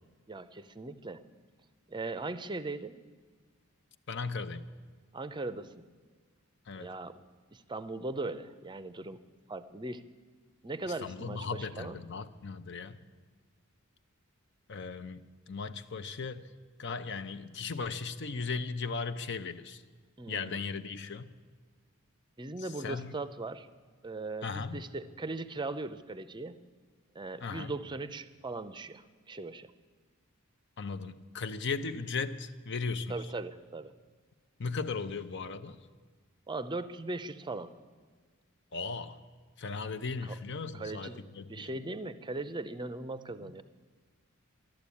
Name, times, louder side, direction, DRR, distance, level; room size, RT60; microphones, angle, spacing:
voice 1, 0.3-1.2 1.9-3.0 5.1-5.9 6.8-7.2 7.5-9.2 9.5-10.0 10.6-12.0 20.2-20.7 22.4-23.7 24.0-26.6 27.1-29.7 33.1-33.9 36.5-37.7 40.2-40.4 40.7-41.2 41.5-43.6, right 2 dB, 20° right, 13 dB, 0.6 m, -39 dB
voice 2, 4.1-4.6 6.7-6.9 11.0-13.0 14.7-16.5 16.8-19.8 20.3-21.3 22.6-23.1 24.4-24.8 27.4-27.7 30.8-33.3 34.6-35.8 38.7-39.2 39.6-41.8 43.4-43.5, left 4 dB, 55° left, 12 dB, 0.7 m, -37 dB
14.0 x 12.0 x 8.5 m, 1.5 s
head